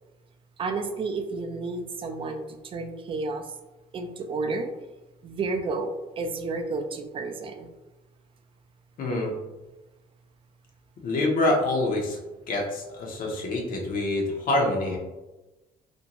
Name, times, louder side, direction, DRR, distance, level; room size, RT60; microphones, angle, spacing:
voice 1, 0.6-3.4 3.9-4.7 5.2-7.7, right 3 dB, 30° right, 5 dB, 0.4 m, -31 dB
voice 2, 9.0-9.3 11.0-12.2 12.5-15.0, left 2 dB, 55° left, 0 dB, 0.6 m, -26 dB
2.6 x 2.2 x 2.8 m, 1.1 s
cardioid pair, 110°, 17 cm